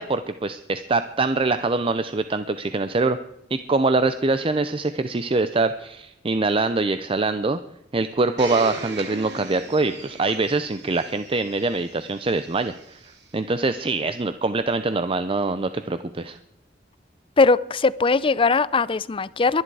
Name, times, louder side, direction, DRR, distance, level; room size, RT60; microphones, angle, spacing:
voice 1, 0.0-3.2 3.5-7.6 7.9-13.0 13.3-16.4, right 3 dB, 30° right, 11 dB, 0.6 m, -24 dB
Domestic sounds home sounds, 8.4-13.2 14.0-14.1, right 3 dB, 65° right, 2.5 m, -38 dB
voice 2, 17.4-19.6, left 4 dB, 30° left, 18 dB, 0.5 m, -20 dB
23.0 x 10.0 x 4.8 m, 0.86 s
head